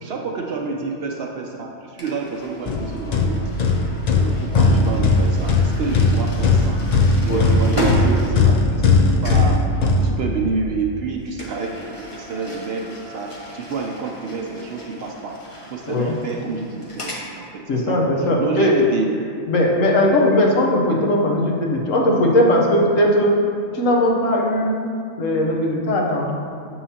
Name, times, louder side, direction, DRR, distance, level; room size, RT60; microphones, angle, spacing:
voice 1, 0.0-3.4 4.1-6.9 7.2-9.6 10.0-19.1, right 4 dB, 65° right, 1 dB, 0.7 m, -28 dB
sound 1, 2.0-9.0 9.2-9.6 11.3-17.3, equal, 30° left, 0.8 m, -33 dB
sound 2, 2.7-10.7, left 3 dB, 60° left, 0.4 m, -18 dB
voice 2, 17.7-18.8 19.5-23.3 23.7-24.8 25.2-26.3, left 1 dB, 80° left, -1 dB, 1.3 m, -18 dB
7.1 x 5.6 x 2.8 m, 2.5 s
omnidirectional pair, 1.3 m